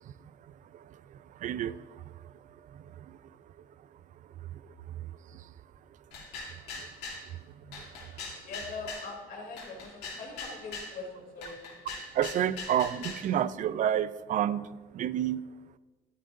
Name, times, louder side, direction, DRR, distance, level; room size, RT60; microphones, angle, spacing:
voice 1, 1.4-1.8 12.2-14.6 14.9-15.4, right 10 dB, 50° right, 17 dB, 0.4 m, -28 dB
sound 1, 6.1-7.2 7.7-9.1 9.6-10.9 11.4-13.3, left 4 dB, 85° left, 2.6 m, -41 dB
voice 2, 8.4-11.6, left 3 dB, 60° left, 0 dB, 3.0 m, -42 dB
11.5 x 10.0 x 2.6 m, 1.3 s
cardioid pair, 110°, 17 cm